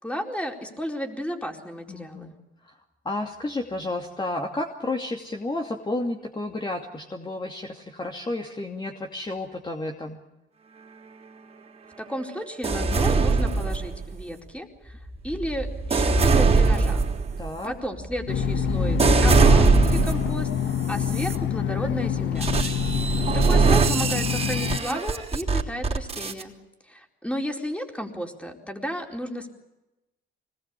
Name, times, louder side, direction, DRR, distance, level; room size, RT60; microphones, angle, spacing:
voice 1, 0.0-2.3 12.0-15.0 15.2-17.0 17.6-20.5 20.9-22.6 22.9-26.5 26.9-29.5, equal, 5° left, 3 dB, 4.4 m, -33 dB
voice 2, 1.9-2.3 2.6-2.8 3.0-10.2 17.4-17.7 22.7-23.2, left 2 dB, 25° left, 2 dB, 2.6 m, -32 dB
sound 1, 12.6-14.2 14.9-20.4 21.0-21.4 22.4-26.4, right 4 dB, 30° right, 3.4 m, -22 dB
sound 2, 18.3-24.8, left 9 dB, 70° left, 1.3 m, -27 dB
25.0 x 20.0 x 8.3 m, 0.99 s
cardioid pair, 90°, 20 cm